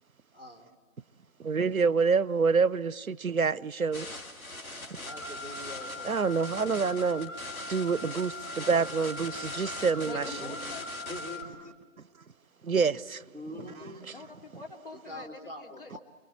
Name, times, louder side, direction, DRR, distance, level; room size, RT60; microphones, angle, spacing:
voice 1, 0.3-0.7 5.0-6.7 10.1-10.7 11.1-11.7 13.3-14.0 15.1-16.0, left 1 dB, 5° left, 1.8 m, -44 dB
voice 2, 1.4-4.1 6.0-7.3 7.7-10.2 12.6-13.2, right 5 dB, 80° right, 0.7 m, -27 dB
sound 1, 3.9-11.4, left 2 dB, 85° left, 2.6 m, -42 dB
Car, 5.1-11.4, left 3 dB, 30° right, 4.2 m, -41 dB
voice 3, 10.0-10.8 13.6-16.0, left 2 dB, 40° left, 2.9 m, -45 dB
29.0 x 22.5 x 8.6 m
figure-of-eight pair, 160°, 41 cm